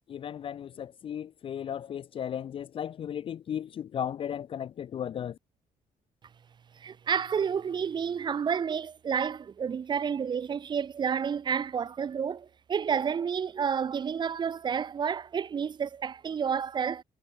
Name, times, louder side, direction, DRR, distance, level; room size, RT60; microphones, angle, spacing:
voice 1, 0.1-5.4, left 9 dB, 40° left, 0.4 m, -35 dB
voice 2, 6.8-17.0, right 7 dB, 35° right, 1.0 m, -30 dB
cardioid pair, 180°, 14 cm